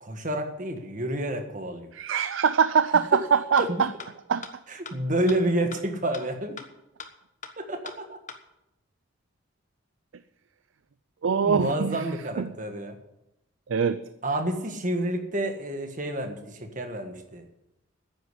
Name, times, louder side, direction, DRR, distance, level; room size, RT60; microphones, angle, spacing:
voice 1, 0.0-1.9 3.6-3.8 4.7-6.6 7.6-8.2 11.4-13.0 14.2-17.4, right 1 dB, 40° right, 6 dB, 1.6 m, -29 dB
voice 2, 1.9-3.9 4.3-4.5 11.2-12.0 12.4-12.5 13.7-14.0, right 6 dB, 70° right, 12 dB, 0.5 m, -23 dB
sound 1, 3.1-3.2 3.6-3.7 4.0-4.1 4.4-4.5 4.9-5.0 5.3-5.4 5.7-5.8 6.1-6.2 6.6-6.7 7.0-7.1 7.4-7.5 7.9-8.0 8.3-8.4, left 5 dB, 35° left, 1.2 m, -39 dB
10.0 x 8.5 x 9.8 m, 0.85 s
head